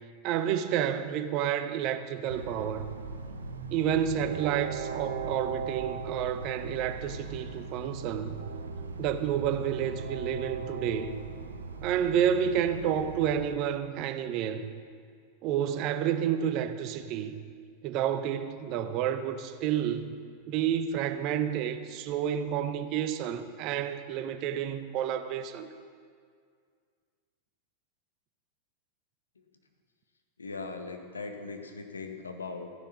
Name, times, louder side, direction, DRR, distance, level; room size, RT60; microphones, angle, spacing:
voice 1, 0.2-2.9 3.7-8.3 9.0-11.1 11.8-14.6 15.4-17.3 17.8-20.1 20.5-25.7, right 9 dB, 40° right, 0.8 m, -30 dB
Train, 2.3-13.5, right 4 dB, 70° right, 0.9 m, -38 dB
voice 2, 30.4-32.7, left 4 dB, 75° left, 1.5 m, -39 dB
15.5 x 10.0 x 6.2 m
figure-of-eight pair, 90°, 0 cm